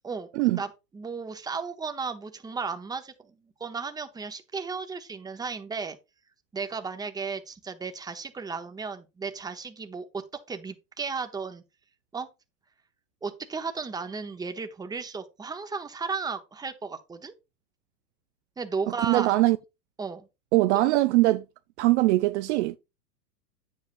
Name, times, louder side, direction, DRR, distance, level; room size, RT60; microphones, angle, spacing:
voice 1, 0.0-3.3 3.6-6.0 6.5-11.6 12.1-12.3 13.2-17.3 18.6-19.3 20.0-20.3 20.7-20.8, right 5 dB, 10° right, 0.8 m, -34 dB
voice 2, 19.1-19.6 20.5-21.4 21.8-22.8, right 18 dB, 45° right, 0.5 m, -21 dB
9.3 x 7.6 x 2.5 m
hypercardioid pair, 115°, 49 cm